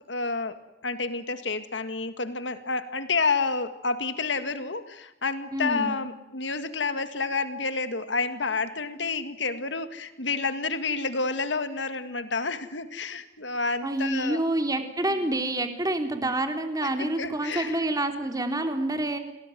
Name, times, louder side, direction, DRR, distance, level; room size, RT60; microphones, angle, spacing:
voice 1, 0.1-0.6 0.8-14.4 16.8-17.8, left 4 dB, 75° left, 10 dB, 2.0 m, -29 dB
voice 2, 5.5-6.0 13.8-19.2, right 1 dB, 20° right, 6 dB, 3.5 m, -27 dB
29.5 x 20.0 x 9.2 m, 0.94 s
head